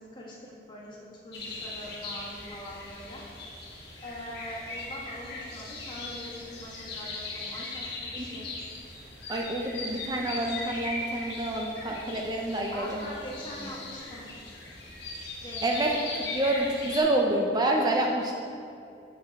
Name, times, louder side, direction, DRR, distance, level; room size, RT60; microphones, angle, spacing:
voice 1, 0.0-3.2 4.0-8.5 12.7-14.3 15.4-16.0, equal, 25° left, -5 dB, 1.4 m, -43 dB
sound 1, 1.3-17.0, left 2 dB, 65° left, 1.5 m, -39 dB
voice 2, 9.3-13.1 15.6-15.9 16.3-18.3, right 1 dB, 20° right, 0 dB, 0.5 m, -28 dB
7.7 x 6.8 x 3.5 m, 2.6 s
head